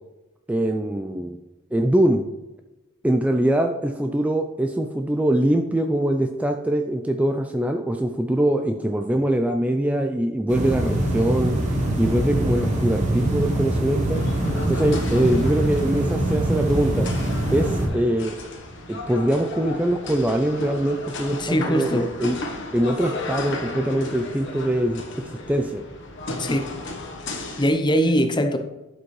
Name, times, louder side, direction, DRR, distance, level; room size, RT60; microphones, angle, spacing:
voice 1, 0.5-1.4 1.7-2.2 3.0-11.6 12.0-14.2 14.7-17.1 17.5-18.4 18.9-22.4 22.7-25.8, right 1 dB, 5° right, 5 dB, 0.3 m, -23 dB
sound 1, 10.5-17.9, right 1 dB, 35° right, 1.5 m, -24 dB
sound 2, 14.1-27.7, left 2 dB, 65° left, 1.1 m, -35 dB
voice 2, 21.4-22.1 26.4-26.7 27.6-28.6, equal, 20° left, 7 dB, 0.7 m, -21 dB
11.5 x 5.1 x 3.2 m, 1.0 s
head